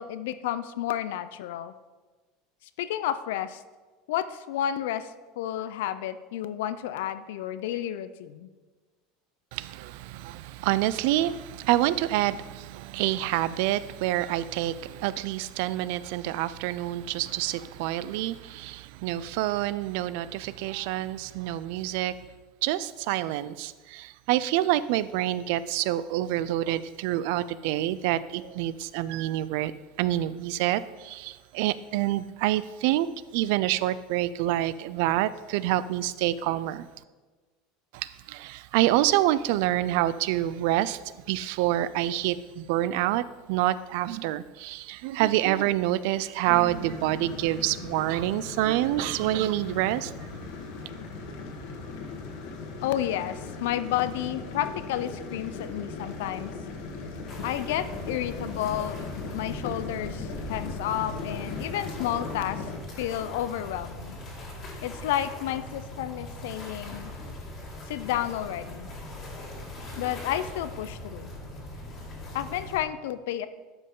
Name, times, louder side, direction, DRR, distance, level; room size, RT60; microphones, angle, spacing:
voice 1, 0.0-1.7 2.8-3.6 4.1-8.5 52.8-56.5 57.4-62.6 63.0-64.2 64.8-67.1 67.9-68.9 70.0-71.3 72.3-73.5, left 11 dB, 80° left, 0.5 m, -31 dB
voice 2, 9.5-22.2 22.6-29.7 30.0-36.9 37.9-50.1, right 14 dB, 65° right, 0.3 m, -27 dB
sound 1, 46.4-62.8, left 4 dB, 60° left, 1.4 m, -38 dB
sound 2, 57.3-72.8, left 1 dB, 30° left, 1.8 m, -41 dB
11.5 x 5.3 x 3.7 m
supercardioid pair, 160°, 0 cm